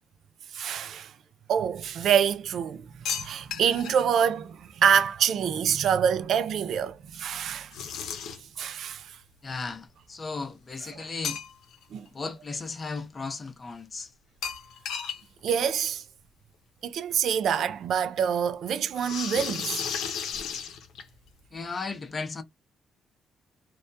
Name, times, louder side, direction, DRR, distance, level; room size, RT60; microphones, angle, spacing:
voice 1, 0.5-1.1 1.5-2.8 3.1-7.7 8.6-9.2 11.0-11.1 11.9-12.1 15.4-16.0 16.8-19.8, right 8 dB, 70° right, 0.3 m, -26 dB
sound 1, 3.1-4.0 7.7-8.6 11.2-11.8 12.2-12.3 14.4-15.2 15.5-15.6 15.9-16.0 17.1-17.2 18.9-21.3, left 7 dB, 80° left, 0.6 m, -34 dB
voice 2, 9.4-11.4 12.1-14.1 20.3-20.7 21.5-22.4, left 4 dB, 35° left, 0.6 m, -36 dB
2.2 x 2.1 x 2.5 m
cardioid pair, 90°, 0 cm